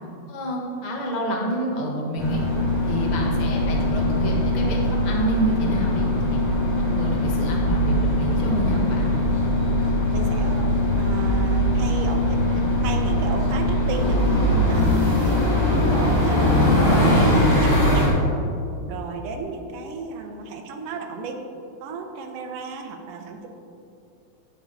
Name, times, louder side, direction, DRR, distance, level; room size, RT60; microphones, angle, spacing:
voice 1, 0.3-2.4 2.8-6.4 6.8-9.1, right 1 dB, 80° left, -1 dB, 0.4 m, -28 dB
sound 1, 2.2-18.1, left 1 dB, 55° left, 3.7 m, -21 dB
voice 2, 10.1-10.7 10.9-14.2 14.7-18.2 18.8-21.4 21.8-23.5, right 4 dB, 65° right, 4 dB, 1.6 m, -34 dB
9.5 x 9.2 x 4.0 m, 2.7 s
omnidirectional pair, 3.4 m